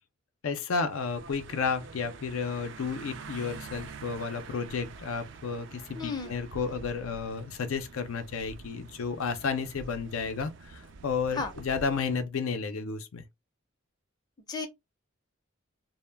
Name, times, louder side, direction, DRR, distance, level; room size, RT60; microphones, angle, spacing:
voice 1, 0.4-13.2, left 5 dB, 90° left, 0.5 m, -32 dB
sound 1, 0.8-12.2, right 4 dB, 60° right, 0.4 m, -47 dB
voice 2, 5.9-6.3 11.3-11.5 14.5-14.7, left 4 dB, 20° left, 0.5 m, -33 dB
2.2 x 2.1 x 3.2 m
head